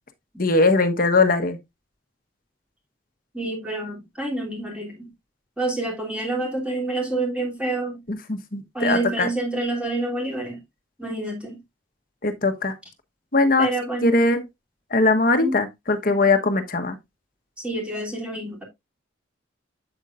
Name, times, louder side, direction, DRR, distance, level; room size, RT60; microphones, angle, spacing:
voice 1, 0.4-1.6 8.1-9.3 12.2-12.7 13.3-13.7 14.0-14.4 14.9-17.0, left 3 dB, 50° left, 1.2 m, -20 dB
voice 2, 3.3-5.1 5.6-8.0 8.7-10.6 11.0-11.6 13.6-14.2 15.4-15.6 17.6-18.6, right 2 dB, 5° right, 3.0 m, -27 dB
8.4 x 8.0 x 2.5 m
head